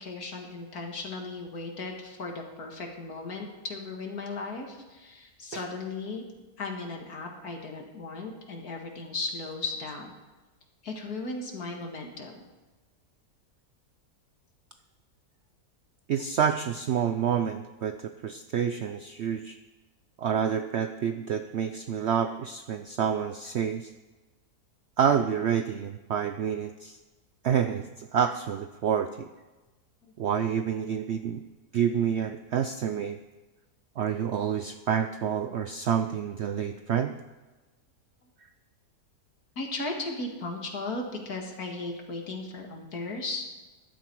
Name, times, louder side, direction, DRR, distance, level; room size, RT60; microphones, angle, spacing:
voice 1, 0.0-6.2 6.6-10.1 10.8-12.4 30.0-30.1 39.6-43.4, left 3 dB, 75° left, 2 dB, 2.4 m, -36 dB
voice 2, 16.1-18.0 18.2-19.6 20.2-23.9 25.0-27.0 27.4-29.3 30.2-31.4 31.7-33.2 34.0-37.1, right 8 dB, 65° right, 9 dB, 0.7 m, -28 dB
14.5 x 11.5 x 4.7 m, 1.2 s
omnidirectional pair, 1.6 m